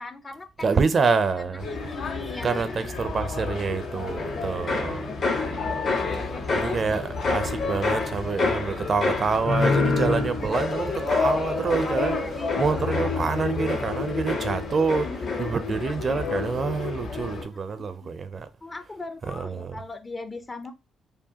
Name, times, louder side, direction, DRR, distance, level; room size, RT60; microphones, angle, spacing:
voice 1, 0.0-0.5 1.4-3.0 3.9-5.6 5.9-7.0 10.4-10.6 12.0-13.1 14.3-14.4 15.0-15.5 17.5-18.1 18.6-20.7, left 3 dB, 25° left, 0.6 m, -39 dB
voice 2, 0.6-1.7 2.4-5.0 6.6-7.0 7.3-12.2 12.6-15.1 15.4-18.5 19.3-19.8, right 5 dB, 40° right, 0.5 m, -26 dB
sound 1, 1.6-17.4, left 4 dB, 90° left, 2.0 m, -32 dB
sound 2, 4.2-15.8 16.1-16.6, left 3 dB, 50° left, 1.2 m, -28 dB
4.7 x 2.4 x 2.8 m
cardioid pair, 90°, 0 cm